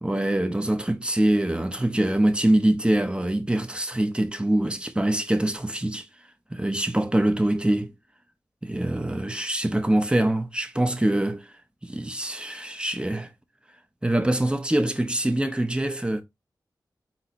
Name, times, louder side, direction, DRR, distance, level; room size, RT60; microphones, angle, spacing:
voice 1, 0.0-6.1 6.5-7.9 8.6-11.5 11.8-13.3 14.0-16.2, right 1 dB, 15° right, 1.0 m, -24 dB
3.9 x 2.9 x 4.2 m
cardioid pair, 45°, 8 cm